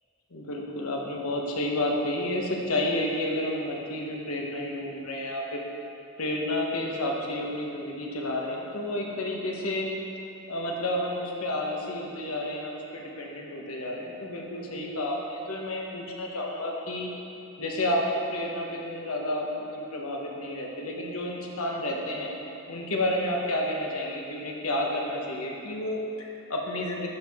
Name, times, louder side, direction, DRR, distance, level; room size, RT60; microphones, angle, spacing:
voice 1, 0.3-5.6 6.2-9.9 10.5-17.1 17.6-22.4 22.7-27.1, left 1 dB, 85° left, -1 dB, 1.0 m, -30 dB
11.5 x 4.6 x 3.5 m, 2.8 s
head